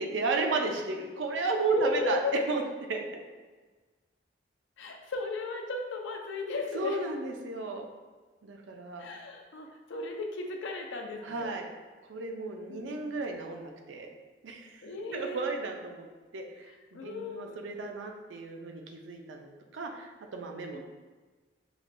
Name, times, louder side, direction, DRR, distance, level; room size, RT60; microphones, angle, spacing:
voice 1, 0.0-2.2 2.5-2.6 2.9-3.1 6.7-7.9 8.4-9.1 11.2-11.7 12.1-14.1 14.4-14.8 15.1-16.1 16.3-20.8, right 3 dB, 90° right, 3 dB, 0.5 m, -33 dB
voice 2, 1.7-2.3 4.8-7.0 9.0-11.5 12.7-13.0 14.8-15.5 16.6-17.6 20.7-20.8, left 3 dB, 85° left, 2 dB, 0.5 m, -35 dB
5.0 x 2.2 x 2.5 m, 1.3 s
head